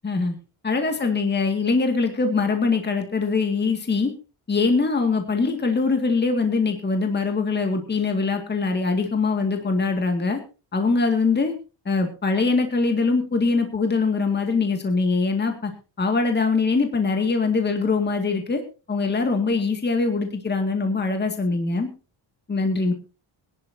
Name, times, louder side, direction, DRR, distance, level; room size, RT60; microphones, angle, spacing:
voice 1, 0.0-0.3 0.6-4.1 4.5-10.4 10.7-11.5 11.9-15.7 16.0-18.6 18.9-21.9 22.5-22.9, left 4 dB, 20° left, 5 dB, 2.0 m, -22 dB
23.0 x 11.0 x 2.7 m, 0.32 s
cardioid pair, 170°, 48 cm